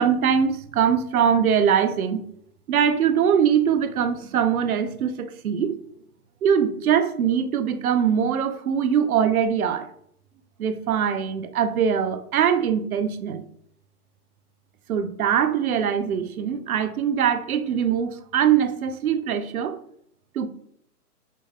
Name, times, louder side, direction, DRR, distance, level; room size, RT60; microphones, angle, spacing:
voice 1, 0.0-2.2 2.7-5.8 6.4-9.9 10.6-13.4 14.9-19.8 20.3-20.5, right 8 dB, 65° right, 0.6 m, -22 dB
5.3 x 2.1 x 3.4 m
hypercardioid pair, 160°, 47 cm